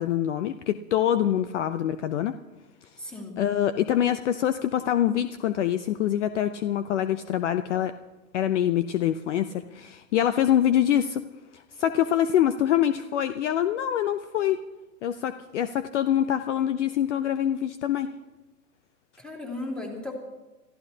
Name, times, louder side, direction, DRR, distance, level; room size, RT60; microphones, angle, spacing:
voice 1, 0.0-2.3 3.4-7.9 8.3-11.2 11.5-14.6 15.0-18.1, left 10 dB, 50° left, 11 dB, 0.7 m, -25 dB
voice 2, 3.0-3.5 19.2-20.1, left 2 dB, ahead, -1 dB, 2.8 m, -36 dB
28.0 x 14.5 x 2.8 m, 1.1 s
hypercardioid pair, 135°, 48 cm